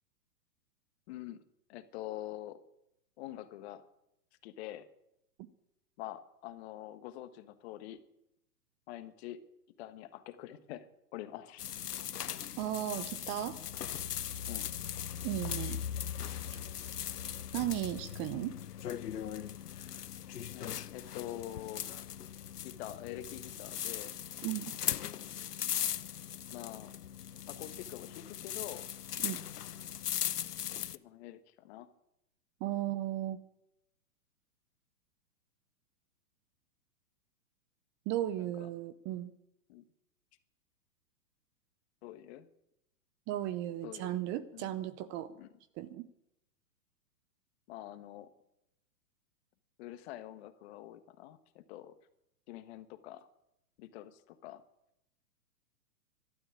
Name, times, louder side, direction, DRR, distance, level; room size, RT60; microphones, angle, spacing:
voice 1, 1.1-1.4 1.7-2.6 3.2-3.9 4.4-4.9 6.0-8.0 8.9-9.4 9.8-11.6 14.5-14.7 20.5-21.9 22.6-24.1 24.8-25.4 26.5-26.9 27.5-28.9 30.9-31.9 38.4-38.7 39.7-39.8 42.0-42.5 43.8-44.2 44.5-44.7 45.3-45.5 47.7-48.3 49.8-52.0 52.5-53.3 53.8-54.6, left 13 dB, 40° left, 11 dB, 1.5 m, -46 dB
sound 1, 11.6-31.0, left 10 dB, 85° left, 0.8 m, -39 dB
voice 2, 12.6-13.6 15.2-15.8 17.5-18.6 24.4-24.7 29.2-29.4 32.6-33.4 38.1-39.3 43.3-45.3 45.8-46.1, right 13 dB, 25° right, 14 dB, 0.7 m, -35 dB
12.5 x 12.5 x 8.5 m, 0.82 s
hypercardioid pair, 120°, 46 cm